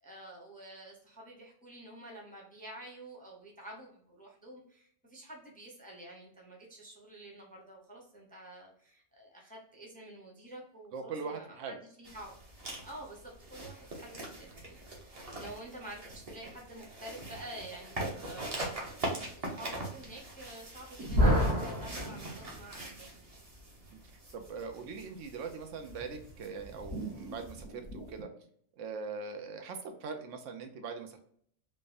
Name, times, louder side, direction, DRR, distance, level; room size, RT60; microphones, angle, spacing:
voice 1, 0.0-12.4 12.8-22.3 22.6-23.3, right 1 dB, 10° left, -2 dB, 0.5 m, -49 dB
voice 2, 10.9-11.8 15.4-15.5 23.9-24.0 24.3-28.3 28.8-31.2, right 5 dB, 90° right, 6 dB, 1.0 m, -41 dB
sound 1, 12.0-27.6, right 1 dB, 35° right, 0.7 m, -43 dB
sound 2, 21.0-22.9 25.9-28.2, equal, 65° right, 1.1 m, -32 dB
3.3 x 2.1 x 2.4 m, 0.63 s
omnidirectional pair, 1.2 m